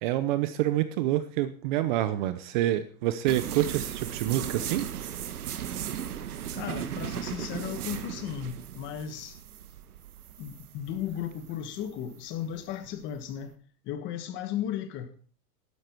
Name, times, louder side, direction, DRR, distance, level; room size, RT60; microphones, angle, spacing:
voice 1, 0.0-4.9, right 13 dB, 35° right, 0.7 m, -27 dB
sound 1, 3.3-13.4, right 10 dB, 75° right, 1.6 m, -37 dB
voice 2, 6.5-9.4 10.4-13.5 13.8-15.1, left 10 dB, 25° left, 1.4 m, -35 dB
12.5 x 11.5 x 4.5 m
hypercardioid pair, 150°, 45 cm